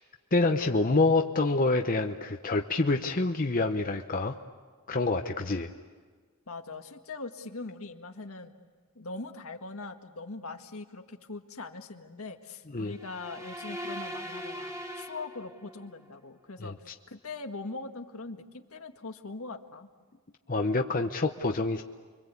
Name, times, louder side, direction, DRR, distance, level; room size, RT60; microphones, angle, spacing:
voice 1, 0.3-4.4 4.9-5.7 12.7-12.9 16.6-16.7 20.5-21.8, left 3 dB, 40° left, 4 dB, 0.9 m, -27 dB
voice 2, 6.5-8.5 8.9-19.9, left 3 dB, 70° left, 5 dB, 1.7 m, -41 dB
sound 1, 12.9-15.9, equal, 15° right, 1.9 m, -40 dB
29.5 x 24.0 x 8.4 m, 1.5 s
head